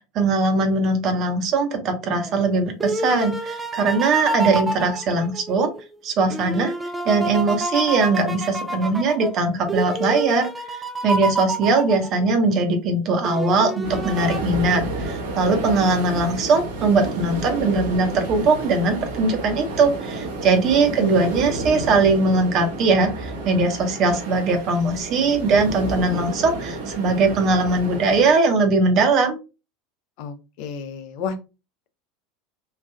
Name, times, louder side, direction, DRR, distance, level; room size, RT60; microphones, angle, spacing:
voice 1, 0.1-5.7 6.0-6.7 7.0-29.4, right 3 dB, 45° right, 5 dB, 0.9 m, -20 dB
sound 1, 2.3-5.8 6.3-12.5 13.2-14.4, right 2 dB, 15° right, 0.4 m, -28 dB
sound 2, 13.8-28.3, right 2 dB, 75° right, 0.9 m, -31 dB
voice 2, 21.0-21.3 30.2-31.4, left 6 dB, 60° left, 8 dB, 0.6 m, -31 dB
3.2 x 2.4 x 2.2 m, 0.29 s
hypercardioid pair, 80°, 0 cm